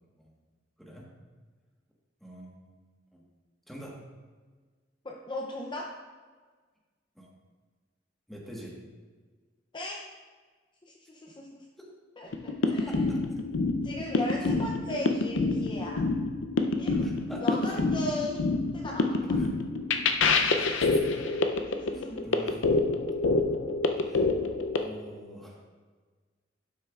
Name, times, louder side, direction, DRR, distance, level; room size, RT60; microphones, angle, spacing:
voice 1, 2.2-2.7 3.1-3.2 3.7-4.0 7.1-7.3 8.3-8.8 12.8-13.4 14.4-14.5 17.0-17.8 19.3-19.5 19.9-20.0 20.3-21.0 21.9-22.6 24.0-24.3 24.7-25.6, equal, ahead, -3 dB, 1.4 m, -44 dB
voice 2, 5.0-6.0 9.7-10.1 10.9-11.6 12.2-13.0 13.8-16.1 16.8-17.1 17.4-19.4 21.7-22.5, left 1 dB, 25° left, -1 dB, 0.6 m, -37 dB
sound 1, 12.3-24.8, left 3 dB, 80° left, 0.6 m, -27 dB
11.5 x 6.4 x 2.4 m, 1.4 s
head